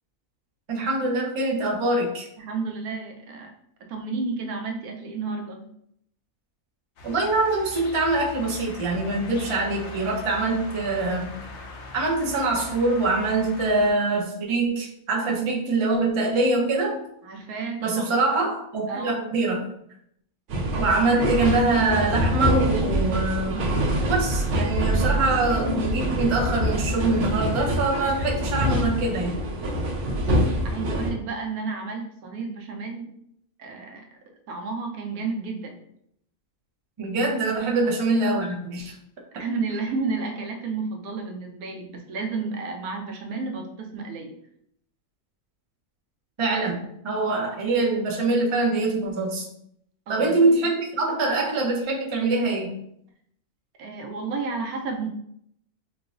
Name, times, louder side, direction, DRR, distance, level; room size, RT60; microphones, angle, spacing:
voice 1, 0.7-2.3 7.0-11.3 11.9-17.0 17.8-19.6 20.8-29.5 37.0-38.9 46.4-49.5 50.1-52.7, right 2 dB, 50° right, -2 dB, 0.3 m, -24 dB
voice 2, 2.4-3.5 3.9-5.7 17.2-18.0 18.9-19.2 30.7-33.1 33.6-34.0 34.5-35.8 37.8-37.9 39.3-44.4 50.1-50.6 53.8-55.1, right 4 dB, 85° right, 2 dB, 1.1 m, -31 dB
sound 1, 7.0-13.9, left 3 dB, 60° left, 0.8 m, -40 dB
sound 2, 20.5-31.1, equal, 65° right, 0.9 m, -25 dB
4.4 x 2.0 x 2.4 m, 0.73 s
omnidirectional pair, 1.5 m